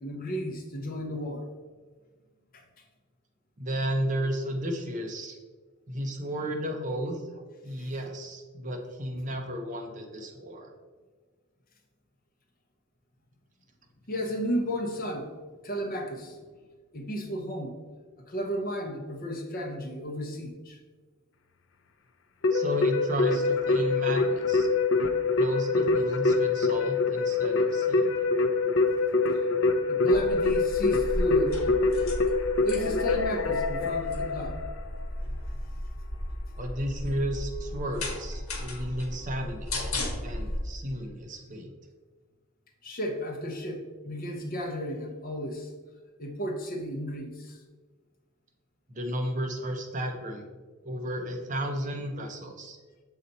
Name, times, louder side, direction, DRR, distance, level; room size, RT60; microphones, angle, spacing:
voice 1, 0.0-1.5 2.5-2.6 7.8-7.9 14.1-15.4 15.6-16.4 16.9-17.7 18.3-20.8 29.3-29.5 29.9-31.6 32.6-34.6 42.8-45.7 46.2-47.6, equal, 40° left, 3 dB, 0.8 m, -33 dB
voice 2, 3.6-5.4 5.9-10.7 22.5-24.7 25.4-28.1 36.6-39.7 40.2-41.7 48.9-50.5 50.8-52.8, equal, 35° right, 3 dB, 0.7 m, -33 dB
Keyboard (musical), 22.4-34.9, left 3 dB, 60° left, 0.5 m, -25 dB
sound 1, 30.1-40.6, left 1 dB, 75° left, 1.2 m, -35 dB
6.8 x 4.1 x 4.0 m, 1.4 s
head